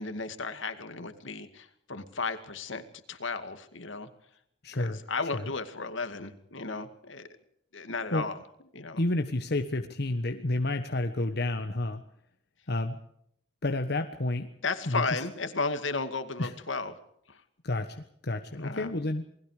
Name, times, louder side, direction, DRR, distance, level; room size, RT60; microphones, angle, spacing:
voice 1, 0.0-4.1 4.7-7.3 7.7-8.4 8.7-9.0 14.6-16.9 17.3-17.4 18.5-18.9, left 4 dB, 80° left, 9 dB, 2.3 m, -34 dB
voice 2, 4.6-5.0 5.3-5.5 8.1-8.3 9.0-12.0 12.7-13.0 13.6-14.5 14.9-15.2 16.4-16.5 17.6-19.2, left 2 dB, 55° left, 6 dB, 1.3 m, -30 dB
29.0 x 20.0 x 5.0 m, 0.72 s
head